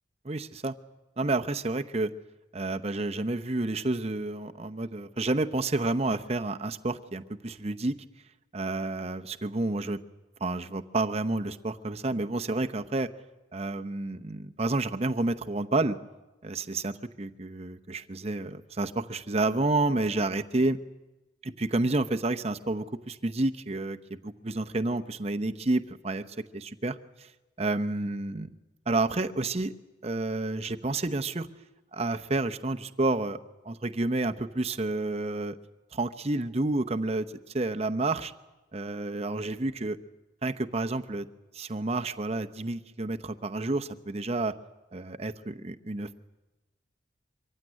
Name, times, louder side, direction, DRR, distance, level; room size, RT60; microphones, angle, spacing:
voice 1, 0.2-0.7 1.2-2.1 2.5-8.0 8.5-10.0 10.4-13.1 13.5-16.0 16.4-20.8 21.4-27.3 27.6-28.5 28.9-29.7 30.0-31.5 31.9-35.6 35.9-37.3 37.5-38.3 38.7-40.0 40.4-41.3 41.5-44.5 44.9-46.1, right 2 dB, 35° right, 9 dB, 0.8 m, -30 dB
24.0 x 15.5 x 9.9 m, 1.1 s
head